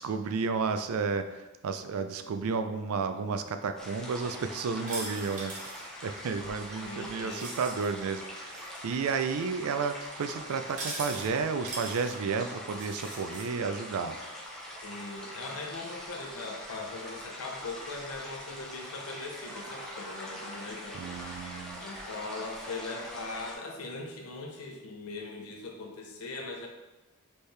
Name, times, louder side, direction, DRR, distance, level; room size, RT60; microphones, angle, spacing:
voice 1, 0.0-14.2 20.9-21.8, right 5 dB, 80° right, 8 dB, 0.4 m, -32 dB
sound 1, 3.8-23.5, equal, 5° left, 0.7 m, -43 dB
sound 2, 4.9-5.9 7.3-7.9 8.4-8.8 10.7-11.3 11.7-12.1 12.7-13.5, right 2 dB, 35° right, 0.9 m, -40 dB
voice 2, 6.8-7.6 14.8-21.0 21.8-26.7, left 3 dB, 80° left, 1 dB, 0.7 m, -40 dB
Crowd, 19.3-23.4, equal, 15° right, 0.9 m, -48 dB
4.4 x 3.3 x 3.2 m, 1.1 s
head